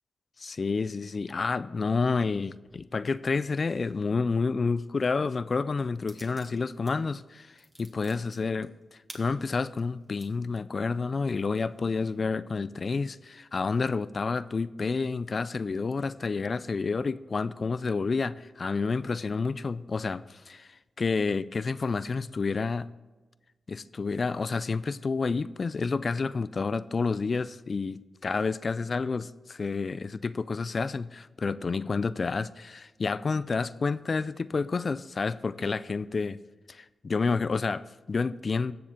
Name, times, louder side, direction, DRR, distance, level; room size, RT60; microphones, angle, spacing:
voice 1, 0.4-8.7 9.1-22.9 23.7-36.4 36.7-38.7, left 4 dB, 50° left, 16 dB, 0.4 m, -29 dB
sound 1, 6.1-6.9 7.3-10.3 10.8-10.9 11.3-12.2, equal, 10° right, 2.0 m, -51 dB
17.5 x 6.9 x 3.7 m, 1.2 s
cardioid pair, 55°, 0 cm